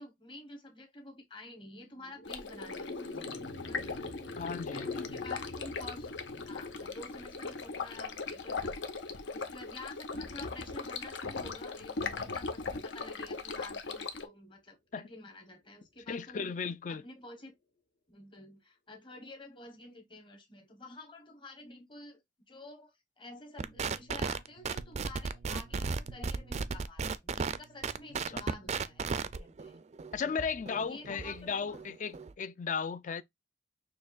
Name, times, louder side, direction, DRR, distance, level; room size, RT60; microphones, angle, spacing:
voice 1, 0.0-4.0 4.7-8.8 9.3-16.5 16.9-17.5 18.1-22.2 22.5-29.8 30.3-31.8, left 2 dB, 25° left, 1.1 m, -50 dB
sound 1, 1.8-12.3, left 3 dB, 60° left, 1.1 m, -46 dB
Stream, 2.3-14.3, left 4 dB, 80° left, 0.8 m, -39 dB
voice 2, 4.4-5.0 14.9-15.0 16.1-17.0 28.3-28.4 30.1-33.2, left 5 dB, 45° left, 0.4 m, -35 dB
sound 2, 23.6-32.3, right 5 dB, 35° right, 0.3 m, -35 dB
6.4 x 2.9 x 2.4 m
head